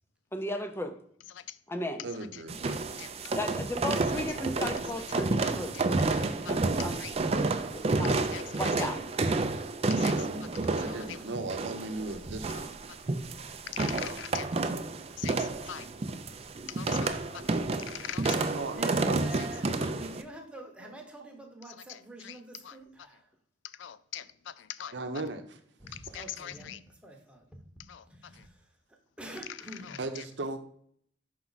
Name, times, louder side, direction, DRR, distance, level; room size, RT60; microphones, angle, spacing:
voice 1, 0.3-0.9 1.7-2.0 3.4-5.7 6.5-7.0 8.0-8.3 8.6-9.0, left 1 dB, 15° left, 0.6 m, -35 dB
voice 2, 1.3-1.6 2.3-3.1 4.3-4.7 5.1-6.7 7.0-7.2 8.0-8.9 9.9-10.3 10.6-11.2 12.5-13.1 13.7-14.5 15.2-15.9 16.7-18.6 19.8-19.9 21.7-23.2 23.6-25.0 25.9-26.8 27.8-28.5 29.5-30.3, left 10 dB, 80° left, 0.4 m, -44 dB
voice 3, 2.0-2.6 9.9-12.7 17.3-17.4 18.5-19.3 20.8-20.9 21.2-21.3 24.9-25.6 30.0-30.6, right 2 dB, 65° right, 0.8 m, -37 dB
sound 1, 2.5-20.2, right 3 dB, 35° right, 0.5 m, -30 dB
voice 4, 18.7-23.3 25.8-26.7 27.0-27.4 27.7-28.6 29.2-30.0, right 1 dB, 5° right, 1.0 m, -46 dB
6.0 x 4.7 x 4.0 m
head